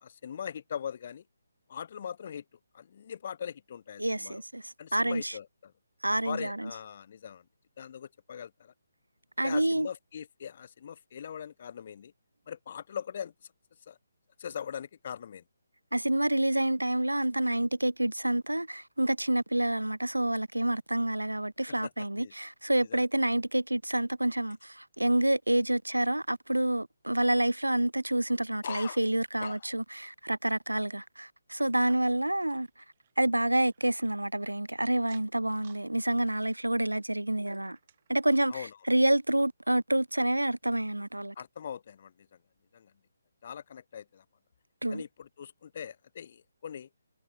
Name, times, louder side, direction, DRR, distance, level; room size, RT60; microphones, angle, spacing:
voice 1, 0.0-1.2 1.7-2.4 2.7-4.4 4.8-5.7 6.2-7.4 7.8-8.7 9.4-12.1 12.5-13.3 13.9-14.0 14.4-15.4 17.5-17.6 21.8-22.3 22.8-23.0 28.6-29.0 29.4-29.6 38.5-38.7 41.3-42.3 42.7-42.9 43.4-44.2 44.9-46.9, left 8 dB, 40° left, 1.6 m, -41 dB
voice 2, 4.0-5.4 6.0-6.7 9.4-9.9 15.9-32.7 33.2-37.8 38.1-41.4 44.8-45.0, right 1 dB, 85° right, 0.4 m, -28 dB
sound 1, 31.6-34.6 35.0-35.9 36.2-38.5 39.0-39.1 39.4-39.5 40.1-40.2, right 9 dB, 40° right, 5.1 m, -62 dB
figure-of-eight pair, 145°, 0 cm